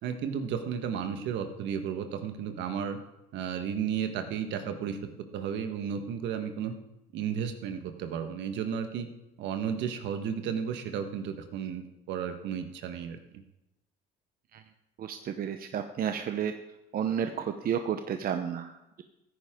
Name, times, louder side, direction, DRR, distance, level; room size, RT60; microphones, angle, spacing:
voice 1, 0.0-3.0 3.3-5.0 5.3-6.7 7.1-9.1 9.4-13.4, right 7 dB, 70° right, 7 dB, 1.5 m, -33 dB
voice 2, 15.0-16.5 16.9-19.0, right 8 dB, 50° right, 7 dB, 0.9 m, -32 dB
15.5 x 9.7 x 3.8 m, 0.92 s
supercardioid pair, 80°, 19 cm